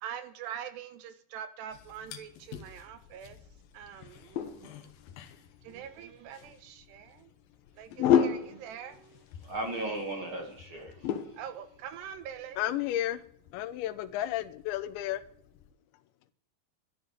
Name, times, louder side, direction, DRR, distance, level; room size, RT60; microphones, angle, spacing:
voice 1, 0.0-3.4 3.7-4.8 5.6-7.3 7.8-9.2 11.4-12.8, right 9 dB, 75° right, 2.8 m, -44 dB
sound 1, 1.7-15.7, left 8 dB, 65° left, 2.6 m, -35 dB
voice 2, 9.4-10.9, right 1 dB, 40° right, 2.1 m, -35 dB
voice 3, 12.6-13.2 13.5-15.2, left 13 dB, 80° left, 3.1 m, -32 dB
13.0 x 10.0 x 6.7 m
omnidirectional pair, 5.2 m